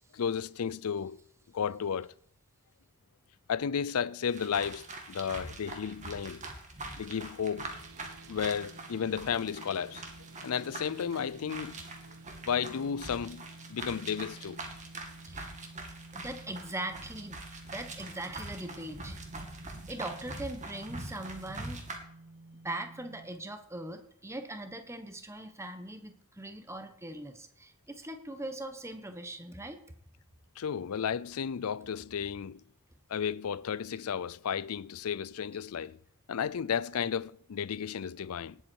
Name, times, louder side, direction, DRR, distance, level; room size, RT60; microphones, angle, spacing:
voice 1, 0.1-1.2 1.5-2.1 3.5-6.4 7.0-7.7 8.3-10.0 10.4-11.8 12.5-13.4 13.7-14.6 30.6-32.6 33.1-36.0 36.3-38.6, left 7 dB, 85° left, 0.5 m, -33 dB
sound 1, 4.3-22.0, right 2 dB, 35° right, 2.3 m, -44 dB
sound 2, 7.7-23.3, right 2 dB, 85° right, 1.1 m, -52 dB
voice 2, 16.1-17.4 17.6-19.2 19.6-21.8 22.6-29.8, right 1 dB, 15° right, 1.3 m, -41 dB
19.0 x 8.0 x 4.7 m
head